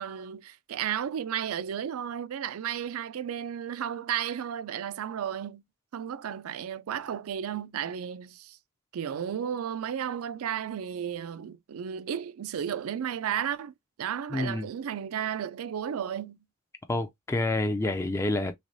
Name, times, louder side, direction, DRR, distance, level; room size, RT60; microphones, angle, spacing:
voice 1, 0.0-5.6 5.9-8.6 8.9-16.4, right 9 dB, 75° right, 0.4 m, -33 dB
voice 2, 14.3-14.7 16.9-18.5, left 2 dB, 15° left, 0.3 m, -28 dB
3.5 x 3.2 x 2.6 m
head